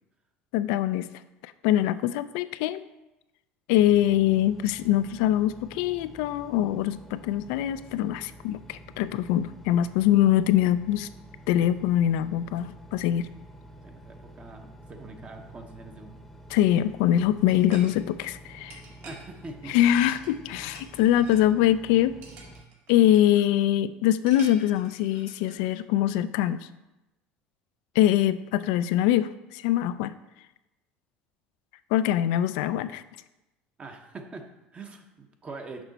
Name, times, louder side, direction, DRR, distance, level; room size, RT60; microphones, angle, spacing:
voice 1, 0.5-1.1 1.6-2.8 3.7-11.1 11.5-13.3 16.5-18.8 19.7-22.2 22.9-26.7 28.0-30.1 31.9-33.0, left 12 dB, 80° left, 14 dB, 0.3 m, -23 dB
Engine, 3.7-22.6, right 1 dB, ahead, 0.8 m, -49 dB
voice 2, 13.8-16.2 19.0-19.8 21.4-21.5 33.8-35.8, right 3 dB, 30° right, 4 dB, 0.8 m, -43 dB
sound 1, 17.4-17.9 18.7-19.3 20.0-20.5 20.7-21.4 22.2-23.5 24.3-25.5, right 3 dB, 60° right, 1.7 m, -48 dB
6.1 x 5.4 x 4.0 m, 0.97 s
supercardioid pair, 105°, 5 cm